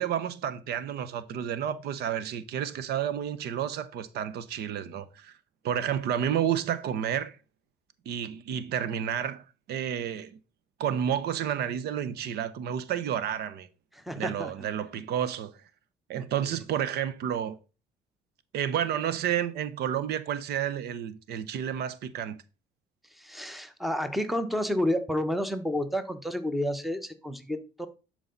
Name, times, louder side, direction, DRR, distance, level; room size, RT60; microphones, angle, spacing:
voice 1, 0.0-5.4 5.6-7.4 8.1-10.4 10.8-13.7 14.2-15.6 16.1-17.6 18.5-22.4, right 9 dB, 70° right, 0.8 m, -30 dB
voice 2, 14.0-14.5 23.2-27.9, left 1 dB, ahead, 1.0 m, -30 dB
11.0 x 4.7 x 3.9 m
cardioid pair, 110°, 17 cm